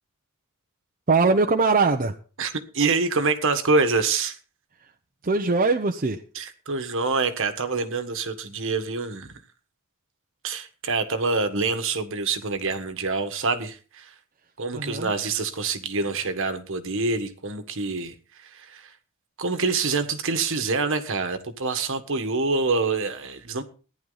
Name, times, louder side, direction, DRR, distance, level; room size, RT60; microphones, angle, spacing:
voice 1, 1.1-2.1 5.2-6.2 14.7-15.1, right 3 dB, 40° right, 0.8 m, -21 dB
voice 2, 2.4-4.4 6.3-9.3 10.4-14.1 14.6-18.1 18.4-18.9 19.4-23.6, right 4 dB, 60° right, 1.5 m, -26 dB
14.5 x 10.5 x 4.0 m
head